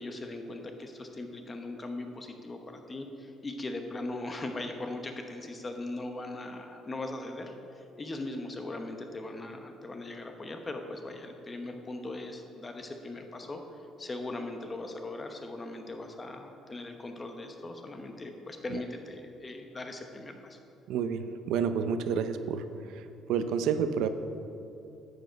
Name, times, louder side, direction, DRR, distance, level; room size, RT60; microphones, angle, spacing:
voice 1, 0.0-20.6, left 2 dB, 20° left, 5 dB, 1.0 m, -39 dB
voice 2, 20.9-22.6 22.9-23.0 23.3-24.1, right 7 dB, 80° right, 10 dB, 0.6 m, -29 dB
11.0 x 8.0 x 5.3 m, 2.8 s
cardioid pair, 140°, 0 cm